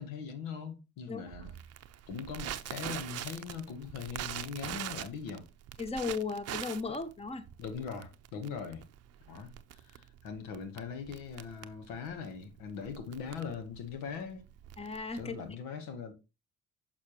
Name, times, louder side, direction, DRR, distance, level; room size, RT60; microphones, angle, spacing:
voice 1, 0.0-1.5 2.1-5.4 7.6-8.9 9.3-9.5 9.8-14.4 15.1-16.1, left 6 dB, 80° left, 1.3 m, -41 dB
Crackle, 1.3-15.5, right 11 dB, 50° right, 0.6 m, -43 dB
voice 2, 5.8-7.5 14.8-15.4, left 4 dB, 20° left, 1.0 m, -36 dB
6.4 x 5.9 x 2.9 m
hypercardioid pair, 60°, 33 cm